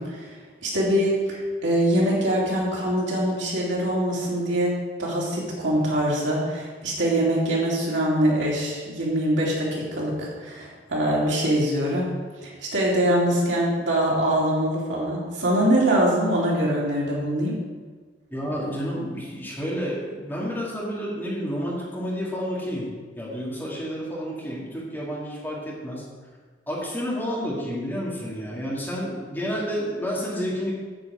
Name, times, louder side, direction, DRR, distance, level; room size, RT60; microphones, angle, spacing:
voice 1, 0.0-4.7 5.0-12.1 12.4-17.5, right 1 dB, 90° right, -5 dB, 3.0 m, -23 dB
voice 2, 18.3-22.9 23.2-26.1 26.7-30.7, equal, 10° left, -6 dB, 2.3 m, -30 dB
9.0 x 4.9 x 7.8 m, 1.5 s
head